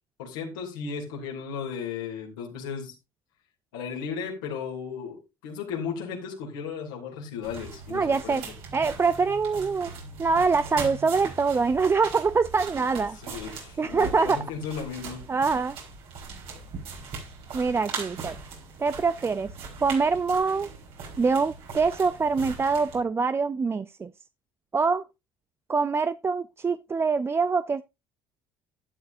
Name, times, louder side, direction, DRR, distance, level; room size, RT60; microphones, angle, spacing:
voice 1, 0.2-2.9 3.7-8.4 13.2-15.2, left 6 dB, 85° left, 2.9 m, -35 dB
sound 1, 7.4-23.0, right 5 dB, 70° right, 4.6 m, -40 dB
voice 2, 7.9-8.5 8.7-9.9 10.2-13.2 13.8-14.4 15.3-15.8 17.5-18.4 18.8-19.5 19.8-20.7 21.2-24.1 24.7-25.0 25.7-27.8, right 4 dB, 25° right, 0.5 m, -24 dB
12.0 x 9.5 x 2.7 m
hypercardioid pair, 70°, 10 cm